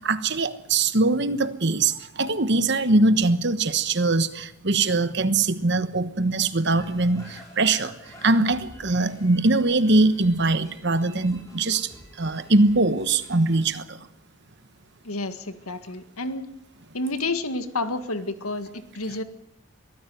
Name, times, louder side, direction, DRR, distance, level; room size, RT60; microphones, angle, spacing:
voice 1, 0.0-11.9 12.2-14.0, right 2 dB, 55° right, 1.2 m, -22 dB
sound 1, 6.8-13.6, equal, 15° left, 6.3 m, -48 dB
voice 2, 15.0-16.5 16.9-19.2, left 2 dB, 90° left, 1.8 m, -30 dB
22.5 x 14.5 x 9.4 m
head